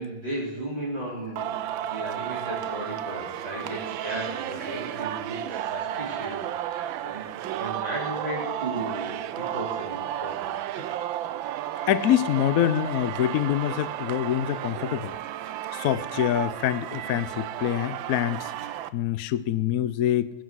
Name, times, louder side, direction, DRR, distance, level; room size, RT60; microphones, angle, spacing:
voice 1, 0.0-1.5 1.8-10.6, right 1 dB, 30° right, -5 dB, 4.1 m, -35 dB
Singing, 1.4-18.9, right 12 dB, 85° right, 1.4 m, -33 dB
voice 2, 11.9-15.1 15.7-18.5 18.9-20.3, left 11 dB, 70° left, 15 dB, 0.8 m, -25 dB
20.5 x 8.1 x 6.3 m, 1.0 s
omnidirectional pair, 2.1 m